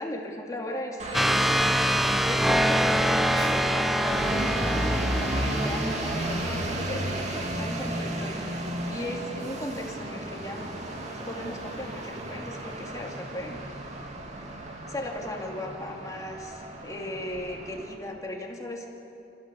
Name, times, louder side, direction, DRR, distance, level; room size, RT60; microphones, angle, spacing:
voice 1, 0.0-1.9 2.2-10.7 11.0-13.8 14.9-18.9, left 1 dB, 20° left, 0 dB, 2.6 m, -37 dB
sound 1, 1.0-17.9, right 1 dB, 40° right, 2.4 m, -33 dB
sound 2, 1.1-6.7, equal, ahead, 0.4 m, -25 dB
28.5 x 15.0 x 7.1 m, 2.7 s
head